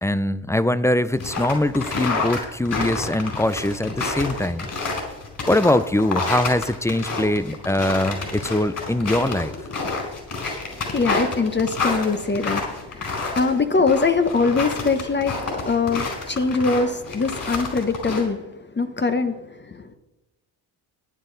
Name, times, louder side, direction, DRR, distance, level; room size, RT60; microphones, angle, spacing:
voice 1, 0.0-4.7 5.5-9.5, left 1 dB, 5° left, 16 dB, 0.4 m, -22 dB
sound 1, 1.1-18.2, left 3 dB, 45° left, 4.6 m, -28 dB
voice 2, 10.7-18.5 18.7-20.0, left 4 dB, 25° left, 9 dB, 1.0 m, -23 dB
15.0 x 9.6 x 4.0 m, 1.0 s
supercardioid pair, 75°, 45 cm